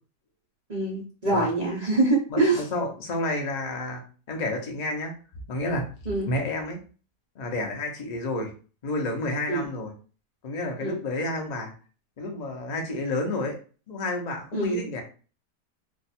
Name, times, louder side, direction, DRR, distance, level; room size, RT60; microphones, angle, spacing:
voice 1, 0.7-2.6 6.1-6.3 9.5-9.6 10.8-11.0 14.5-14.8, right 2 dB, 60° right, -2 dB, 0.4 m, -24 dB
voice 2, 2.3-4.0 4.3-5.1 5.5-5.8 6.3-6.8 7.4-8.5 8.8-9.9 10.4-11.7 12.2-13.6 13.9-15.0, left 2 dB, 75° left, 2 dB, 0.4 m, -30 dB
2.6 x 2.3 x 4.1 m, 0.38 s
omnidirectional pair, 1.8 m